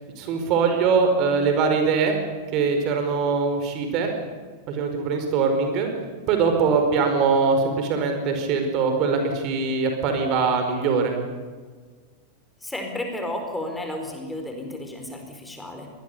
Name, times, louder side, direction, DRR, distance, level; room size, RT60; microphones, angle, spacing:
voice 1, 0.2-2.2 2.5-4.1 4.7-5.9 6.3-11.1, right 5 dB, 40° right, 5 dB, 4.9 m, -22 dB
voice 2, 12.6-15.9, left 1 dB, 5° left, 3 dB, 4.4 m, -32 dB
24.5 x 20.0 x 6.9 m, 1.5 s
figure-of-eight pair, 90°, 0 cm